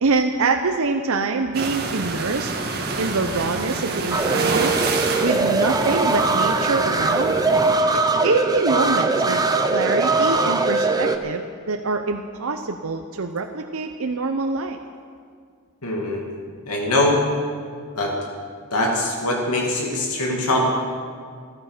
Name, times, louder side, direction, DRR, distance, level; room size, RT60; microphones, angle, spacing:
voice 1, 0.0-2.5 3.0-4.7 5.2-7.4 8.2-9.4 9.7-14.8, right 3 dB, 65° right, 4 dB, 0.7 m, -24 dB
sound 1, 1.5-7.8, right 3 dB, 45° right, 1.6 m, -27 dB
sound 2, 4.1-11.2, right 3 dB, 15° right, 0.8 m, -21 dB
voice 2, 15.8-16.2 16.7-17.2 18.0-18.1 18.7-20.6, left 1 dB, 85° left, -1 dB, 2.4 m, -22 dB
14.0 x 13.5 x 6.6 m, 2.1 s
head